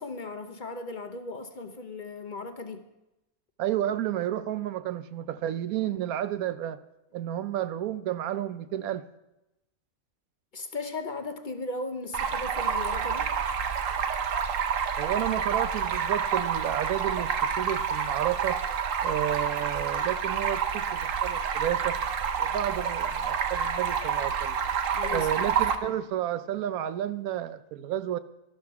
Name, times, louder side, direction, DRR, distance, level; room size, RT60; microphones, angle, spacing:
voice 1, 0.0-2.9 10.5-13.3 24.9-25.6, left 3 dB, 40° left, 7 dB, 0.8 m, -37 dB
voice 2, 3.6-6.8 7.1-9.1 15.0-18.6 19.0-22.0 22.4-24.6 25.1-28.2, right 11 dB, 90° right, 13 dB, 1.1 m, -31 dB
Stream, 12.1-25.8, right 7 dB, 65° right, 1.2 m, -28 dB
13.0 x 11.5 x 4.7 m, 0.93 s
omnidirectional pair, 1.5 m